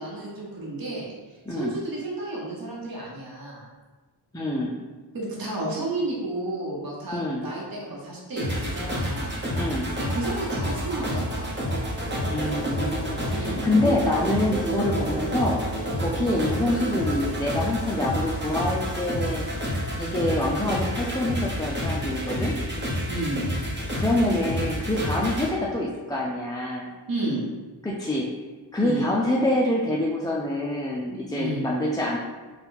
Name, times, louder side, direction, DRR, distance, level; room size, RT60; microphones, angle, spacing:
voice 1, 0.0-3.7 5.1-9.4 10.0-11.5 13.3-13.7 23.1-23.5 27.1-27.5 28.8-29.1 31.3-31.7, right 2 dB, 55° right, -4 dB, 1.0 m, -32 dB
voice 2, 4.3-4.7 7.1-7.4 9.6-9.9 12.3-15.6 16.0-19.5 20.0-22.6 24.0-26.9 27.8-28.3 28.7-32.2, left 1 dB, 10° left, -3 dB, 0.3 m, -26 dB
sound 1, 8.4-25.5, equal, 25° right, 0.9 m, -29 dB
3.9 x 2.2 x 4.0 m, 1.3 s
wide cardioid pair, 95°, 44 cm